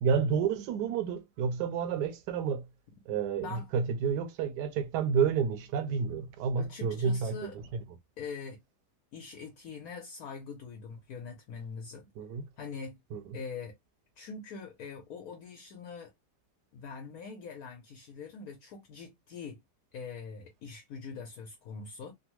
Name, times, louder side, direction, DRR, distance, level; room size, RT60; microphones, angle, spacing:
voice 1, 0.0-2.6 3.1-7.4 12.2-12.4 13.1-13.4, right 6 dB, 80° right, 1.1 m, -30 dB
voice 2, 6.6-7.5 8.2-8.6 9.1-12.1 12.6-13.0 13.3-13.8 14.2-16.1 16.7-19.6 19.9-22.1, left 5 dB, 70° left, 1.1 m, -43 dB
3.3 x 2.0 x 3.0 m
omnidirectional pair, 1.8 m